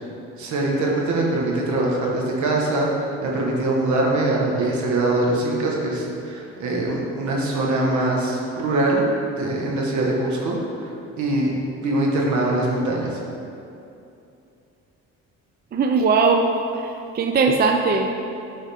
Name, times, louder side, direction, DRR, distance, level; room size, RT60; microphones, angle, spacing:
voice 1, 0.3-9.0 9.4-10.9 11.2-13.2, right 2 dB, 70° right, -2 dB, 1.4 m, -23 dB
voice 2, 15.7-16.5 16.8-18.1, right 4 dB, 35° right, 3 dB, 0.4 m, -19 dB
9.0 x 4.0 x 3.5 m, 2.7 s
cardioid pair, 90°, 30 cm